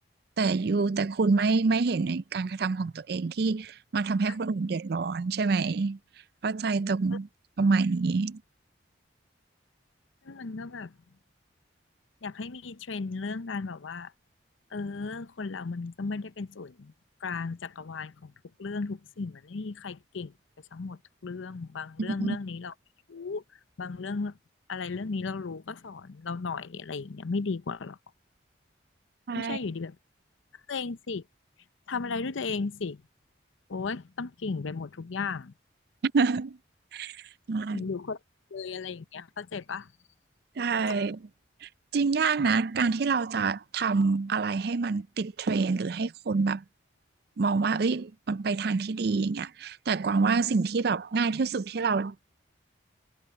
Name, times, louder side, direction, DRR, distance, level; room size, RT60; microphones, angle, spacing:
voice 1, 0.4-6.0 6.4-7.3 7.6-8.4 22.0-22.4 29.3-29.6 36.0-36.6 36.9-37.9 40.6-41.2 41.6-46.6 47.4-52.1, right 4 dB, 55° right, 0.4 m, -27 dB
voice 2, 10.2-10.9 12.2-14.1 14.7-16.9 17.2-18.3 18.6-20.3 20.7-22.7 23.1-23.4 23.8-24.3 24.7-28.0 29.3-30.0 30.7-31.2 31.9-33.0 33.7-35.5 37.7-38.2 38.5-39.9 40.9-41.1, left 4 dB, 85° left, 0.7 m, -35 dB
head